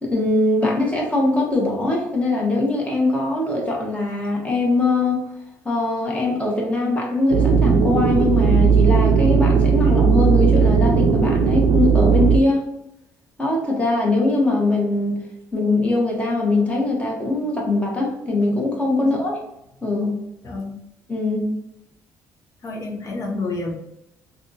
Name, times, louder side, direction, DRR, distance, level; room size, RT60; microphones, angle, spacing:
voice 1, 0.0-5.2 5.6-12.7 13.4-15.2 15.5-19.4 19.8-20.2 21.1-21.6, left 2 dB, 20° left, -2 dB, 1.1 m, -21 dB
sound 1, 7.3-12.4, right 6 dB, 70° right, 0.5 m, -16 dB
voice 2, 20.4-20.8 22.6-23.7, left 2 dB, 45° left, -1 dB, 0.9 m, -29 dB
3.4 x 2.4 x 2.7 m, 0.83 s
cardioid pair, 95°, 7 cm